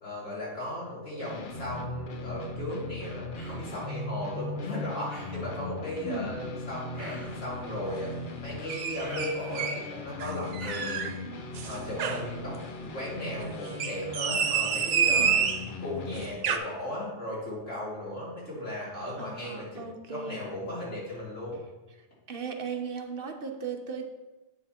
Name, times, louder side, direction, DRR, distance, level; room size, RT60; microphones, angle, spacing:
voice 1, 0.0-11.1 11.6-15.3 15.8-19.8 20.1-21.6, left 1 dB, 85° left, -7 dB, 3.3 m, -36 dB
sound 1, 1.2-16.3, left 2 dB, 50° left, 0.8 m, -39 dB
Human voice, 3.4-3.7 5.1-5.6 6.9-7.5 9.0-9.9 10.6-11.1, equal, 25° left, 2.5 m, -45 dB
voice 2, 6.0-6.4 15.2-15.5 19.2-20.5 22.3-24.1, right 5 dB, 55° right, 5 dB, 0.9 m, -37 dB
sound 2, 8.7-9.8 10.2-11.1 11.5-12.3 13.7-15.7 16.2-16.6, right 7 dB, 85° right, 1.0 m, -28 dB
8.5 x 5.7 x 4.3 m, 1.1 s
omnidirectional pair, 1.2 m